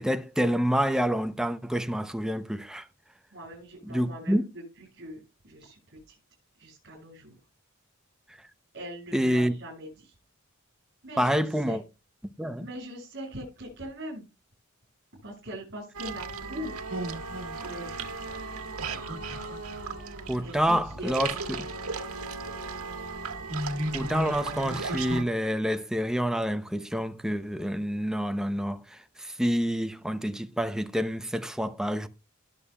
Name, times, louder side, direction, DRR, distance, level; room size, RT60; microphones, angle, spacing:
voice 1, 0.0-2.9 3.9-4.5 9.1-9.6 11.2-11.8 12.2-12.7 20.3-21.7 23.9-32.1, equal, 5° right, 0.6 m, -28 dB
voice 2, 3.3-4.5 4.9-5.2 5.4-6.1 6.6-7.3 8.7-10.1 11.0-11.4 11.6-11.8 12.6-14.2 15.2-16.8 17.6-18.1 20.4-21.1, equal, 50° right, 7.3 m, -41 dB
sound 1, 15.9-25.2, right 3 dB, 85° right, 1.6 m, -35 dB
19.5 x 7.0 x 2.3 m
head